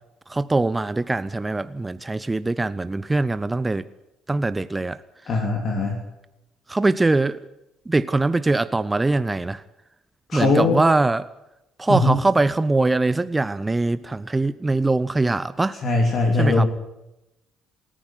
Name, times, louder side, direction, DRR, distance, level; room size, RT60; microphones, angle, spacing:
voice 1, 0.3-3.8 4.3-5.0 6.7-7.4 7.9-9.6 10.3-11.3 11.8-15.8 16.4-16.7, right 2 dB, 15° right, 16 dB, 0.7 m, -22 dB
voice 2, 5.3-6.0 10.3-10.8 11.9-12.2 15.8-16.7, left 2 dB, 45° left, 2 dB, 3.2 m, -20 dB
27.5 x 10.0 x 9.4 m, 0.91 s
figure-of-eight pair, 50°, 0 cm